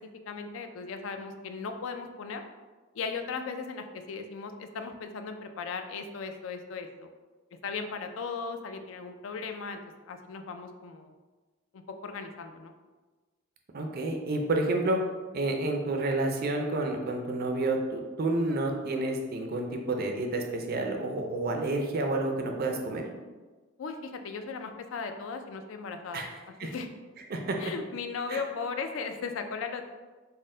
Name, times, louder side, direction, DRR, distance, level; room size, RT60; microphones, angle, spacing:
voice 1, 0.3-2.4 2.9-7.1 7.6-9.8 10.1-11.1 11.7-12.7 23.8-26.3 26.6-26.9 27.6-29.8, left 5 dB, 75° left, 7 dB, 0.4 m, -37 dB
voice 2, 13.7-15.0 15.3-23.1 26.1-26.3 26.6-26.7 27.3-27.6 28.3-28.4, right 2 dB, 50° right, 3 dB, 0.5 m, -29 dB
4.2 x 2.1 x 3.7 m, 1.3 s
head